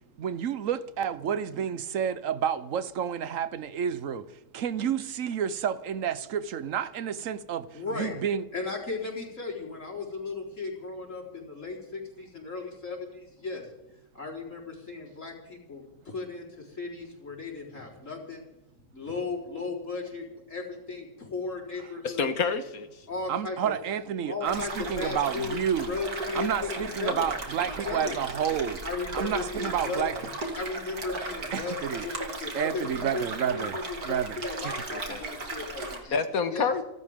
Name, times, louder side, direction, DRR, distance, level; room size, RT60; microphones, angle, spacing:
voice 1, 0.2-8.4 23.3-26.0 26.3-28.8 29.1-30.1 31.5-32.1 32.5-33.8 34.0-34.7, right 8 dB, 65° right, 1.2 m, -30 dB
voice 2, 7.7-8.1 8.5-13.7 14.1-18.4 18.9-22.3 23.1-23.6 24.2-25.6 25.9-27.3 27.6-28.3 28.8-30.0 30.5-36.2 36.5-36.7, left 4 dB, 55° left, 4.6 m, -36 dB
voice 3, 22.0-23.0 35.1-35.2 36.1-36.8, left 5 dB, 75° left, 1.8 m, -28 dB
sound 1, 24.4-36.0, right 2 dB, 85° right, 2.9 m, -36 dB
30.0 x 12.5 x 3.7 m
omnidirectional pair, 1.6 m